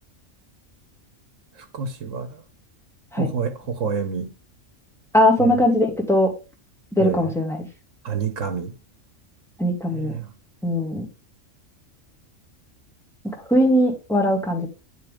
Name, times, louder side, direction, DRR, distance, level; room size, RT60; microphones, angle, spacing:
voice 1, 1.7-2.3 3.2-4.3 5.4-5.5 7.0-7.2 8.0-8.7 9.9-10.3, right 5 dB, 80° right, 1.3 m, -27 dB
voice 2, 5.1-6.3 7.0-7.6 9.6-10.1 10.6-11.1 13.2-14.7, left 1 dB, ahead, 1.5 m, -20 dB
8.8 x 3.8 x 3.5 m
omnidirectional pair, 1.3 m